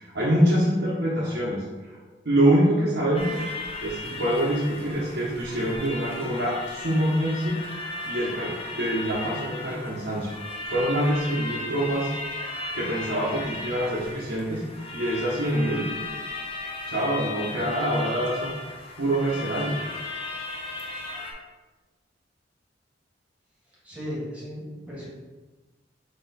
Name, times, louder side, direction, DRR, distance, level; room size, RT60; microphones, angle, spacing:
voice 1, 0.0-2.0 2.2-3.4 3.8-7.6 8.0-10.3 10.7-12.1 12.7-14.6 14.9-16.0 16.9-18.6 19.0-19.8, right 1 dB, 70° right, -7 dB, 1.0 m, -25 dB
sound 1, 3.1-21.3, left 2 dB, 30° left, 0.6 m, -36 dB
voice 2, 23.7-25.1, equal, 10° right, -8 dB, 1.5 m, -36 dB
4.1 x 3.0 x 4.2 m, 1.2 s
head